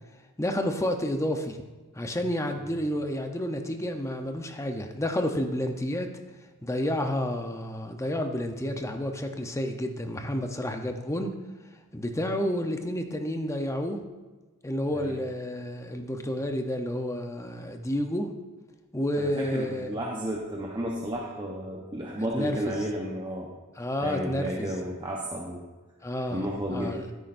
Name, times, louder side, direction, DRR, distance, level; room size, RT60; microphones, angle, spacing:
voice 1, 0.4-1.6 1.9-6.1 6.6-11.3 11.9-14.0 14.6-18.3 18.9-19.9 22.3-22.7 23.8-24.7 26.0-27.0, left 1 dB, 15° left, 5 dB, 0.7 m, -30 dB
voice 2, 19.1-23.5 24.0-25.6 26.3-27.0, right 1 dB, 20° right, -2 dB, 0.9 m, -33 dB
13.0 x 9.7 x 2.6 m, 1.3 s
head